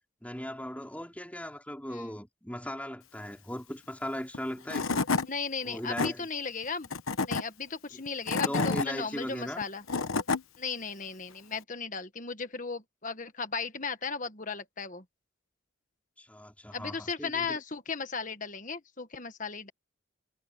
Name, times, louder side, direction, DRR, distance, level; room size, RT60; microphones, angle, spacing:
voice 1, 0.2-5.0 5.6-6.3 8.3-9.7 16.2-17.6, equal, 5° left, 5.2 m, -38 dB
Tools / Wood, 4.3-4.4 4.7-5.3 5.7-6.1 6.8-7.4 8.1-8.9 9.6-10.4, left 4 dB, 80° left, 1.1 m, -28 dB
voice 2, 5.3-6.9 7.3-9.8 10.6-15.0 16.7-19.7, left 5 dB, 40° left, 1.6 m, -36 dB
head